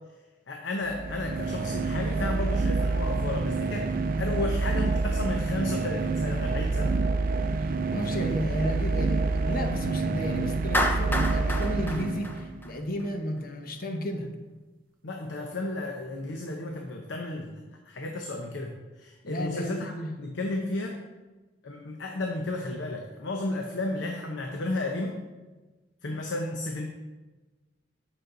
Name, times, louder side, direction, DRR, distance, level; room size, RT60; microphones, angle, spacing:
voice 1, 0.5-3.9 4.2-7.0 15.0-17.6 17.9-19.9 20.2-21.0 21.6-25.2 26.0-26.9, left 2 dB, 90° left, 2 dB, 0.8 m, -33 dB
sound 1, 0.9-12.7, right 3 dB, 50° right, 0.5 m, -27 dB
voice 2, 7.6-14.3 19.2-20.1, equal, 55° left, 5 dB, 1.0 m, -32 dB
Clapping, 10.7-13.0, left 1 dB, 10° left, 0.6 m, -29 dB
9.2 x 6.3 x 3.9 m, 1.2 s
head